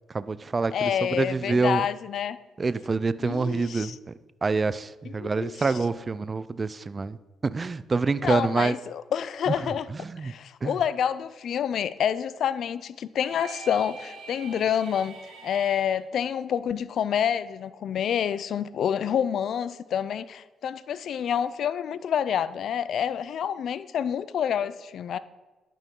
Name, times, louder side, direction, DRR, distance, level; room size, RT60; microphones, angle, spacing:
voice 1, 0.1-1.8 2.6-3.9 4.4-7.2 7.4-8.7 10.2-10.3 10.6-10.8, right 4 dB, 30° right, 16 dB, 0.4 m, -26 dB
voice 2, 0.7-2.4 3.2-4.0 5.0-5.7 8.2-9.9 10.2-15.2 15.4-25.2, left 8 dB, 65° left, 15 dB, 0.5 m, -28 dB
sound 1, 13.1-15.9, right 4 dB, 80° right, 2.7 m, -44 dB
10.5 x 9.1 x 3.8 m, 1.2 s
cardioid pair, 90°, 0 cm